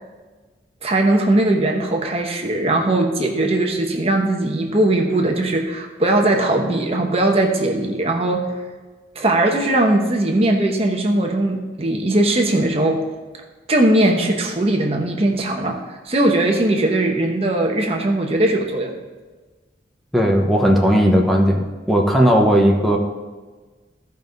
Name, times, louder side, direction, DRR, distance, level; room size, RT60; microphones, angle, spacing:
voice 1, 0.8-8.5 9.1-13.0 13.7-19.0, right 1 dB, 35° right, 2 dB, 1.0 m, -19 dB
voice 2, 20.1-23.0, equal, ahead, -1 dB, 1.0 m, -16 dB
15.0 x 5.4 x 3.9 m, 1.3 s
head